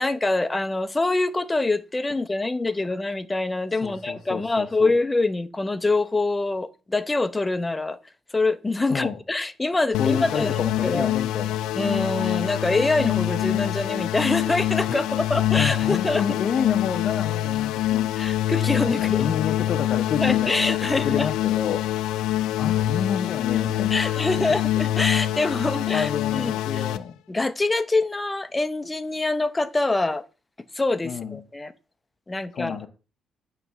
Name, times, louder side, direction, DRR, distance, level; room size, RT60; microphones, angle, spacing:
voice 1, 0.0-8.0 8.3-11.1 11.8-16.2 18.2-19.4 20.2-21.3 23.9-26.8 27.3-30.2 30.7-31.7 32.3-32.8, left 2 dB, 20° left, 0.8 m, -25 dB
voice 2, 3.8-4.9 8.9-9.2 10.0-11.6 14.9-15.0 15.4-18.1 19.0-24.4 25.9-27.1 31.0-31.4 32.5-32.9, left 7 dB, 60° left, 0.8 m, -29 dB
sound 1, 9.9-27.0, left 13 dB, 85° left, 0.3 m, -25 dB
9.2 x 3.3 x 6.1 m
supercardioid pair, 65°, 0 cm